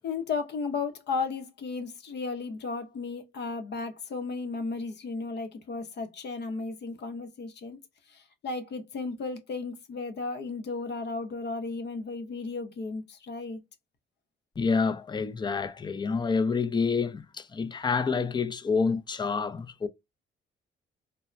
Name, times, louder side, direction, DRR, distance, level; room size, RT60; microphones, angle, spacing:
voice 1, 0.0-7.8 8.1-13.6, left 4 dB, 60° left, 0.7 m, -34 dB
voice 2, 14.6-19.9, left 5 dB, 20° left, 0.4 m, -28 dB
3.1 x 2.1 x 2.4 m
cardioid pair, 90°, 20 cm